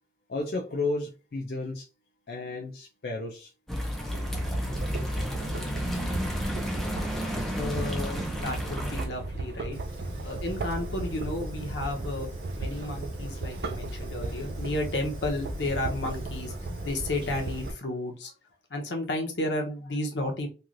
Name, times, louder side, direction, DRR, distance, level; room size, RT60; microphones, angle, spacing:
voice 1, 0.3-1.9 2.3-3.5, left 3 dB, 60° left, 0.4 m, -32 dB
sound 1, 3.7-9.1, equal, ahead, 0.5 m, -31 dB
sound 2, 4.0-17.7, right 2 dB, 65° right, 0.3 m, -37 dB
voice 2, 7.6-9.8 10.2-12.3 12.5-18.3 18.7-20.5, left 1 dB, 90° left, 0.8 m, -32 dB
Fire, 9.7-17.7, equal, 25° right, 1.1 m, -41 dB
3.1 x 2.4 x 2.5 m
head